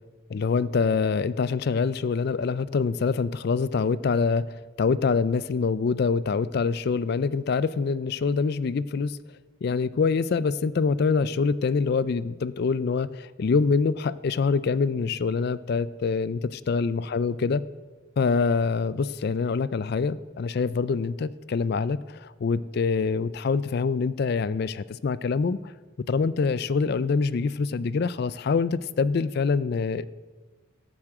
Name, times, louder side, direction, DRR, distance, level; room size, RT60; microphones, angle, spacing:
voice 1, 0.3-9.2 9.6-17.6 18.2-25.7 26.1-30.0, left 5 dB, 50° left, 17 dB, 0.4 m, -25 dB
13.0 x 7.3 x 7.8 m, 1.4 s
head